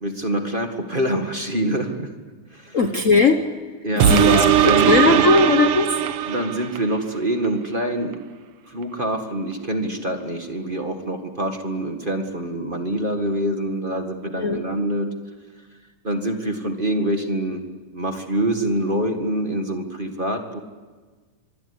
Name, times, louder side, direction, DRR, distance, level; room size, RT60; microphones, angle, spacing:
voice 1, 0.0-2.1 2.5-2.8 3.8-5.2 6.3-8.2 8.7-15.1 16.0-17.7 17.9-20.6, right 1 dB, 20° right, 5 dB, 1.5 m, -25 dB
voice 2, 2.7-3.4 3.9-6.0 14.4-14.6, left 3 dB, 90° left, 6 dB, 0.7 m, -18 dB
sound 1, 4.0-6.9 7.4-7.5, right 11 dB, 65° right, 1.5 m, -18 dB
25.0 x 20.5 x 9.9 m, 1.4 s
omnidirectional pair, 3.5 m